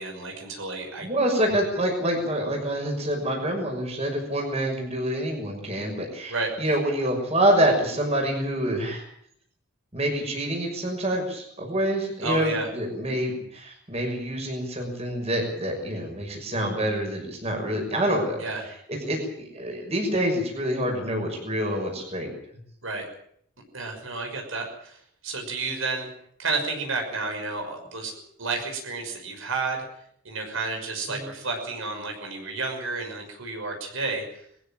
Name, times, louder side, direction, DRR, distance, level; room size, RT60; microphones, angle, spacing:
voice 1, 0.0-1.1 6.3-6.5 12.2-12.7 18.4-18.7 22.8-23.1 23.7-26.1 26.4-28.1 28.4-29.8 30.2-34.4, right 3 dB, 70° right, 3 dB, 6.0 m, -31 dB
voice 2, 1.0-9.0 9.9-22.3 31.1-31.2, right 1 dB, 30° right, 2 dB, 6.2 m, -27 dB
21.5 x 15.5 x 8.9 m, 0.67 s
head